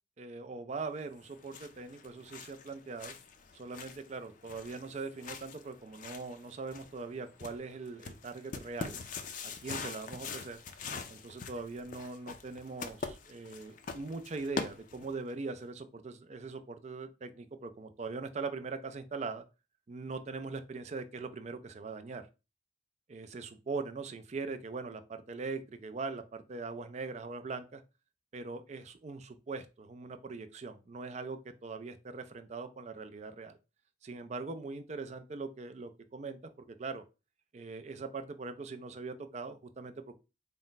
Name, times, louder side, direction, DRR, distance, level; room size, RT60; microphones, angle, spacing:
voice 1, 0.2-3.2 3.5-9.0 9.4-10.6 11.1-19.4 19.9-22.3 23.1-27.8 28.3-33.6 34.0-37.0 37.5-39.9, right 4 dB, 35° right, 9 dB, 0.4 m, -41 dB
sound 1, 1.1-15.3, left 4 dB, 40° left, 0.4 m, -44 dB
4.2 x 2.1 x 3.9 m, 0.29 s
head